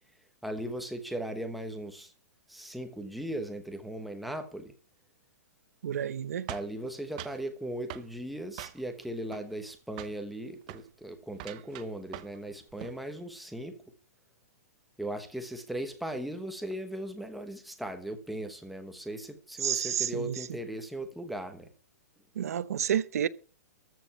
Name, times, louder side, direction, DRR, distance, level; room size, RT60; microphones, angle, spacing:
voice 1, 0.4-2.1 2.5-4.7 6.5-13.8 15.0-21.7, right 1 dB, ahead, 1.0 m, -38 dB
voice 2, 5.8-6.5 19.6-20.4 22.4-23.3, right 9 dB, 65° right, 0.8 m, -30 dB
sound 1, 6.5-7.4 7.9-8.1 8.6-9.0 9.3-9.7 10.0-10.2 10.6-10.9 11.3-12.4 12.7-13.0, right 14 dB, 25° right, 0.6 m, -43 dB
14.0 x 5.2 x 8.1 m
hypercardioid pair, 175°, 9 cm